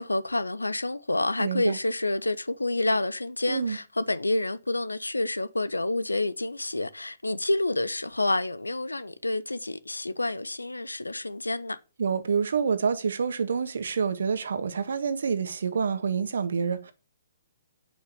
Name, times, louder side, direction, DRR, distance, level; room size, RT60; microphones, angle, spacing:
voice 1, 0.0-11.8, left 2 dB, 90° left, 0.9 m, -28 dB
voice 2, 1.4-1.8 3.5-3.8 12.0-16.9, right 6 dB, 65° right, 1.6 m, -27 dB
8.8 x 6.5 x 6.8 m
figure-of-eight pair, 130°, 0 cm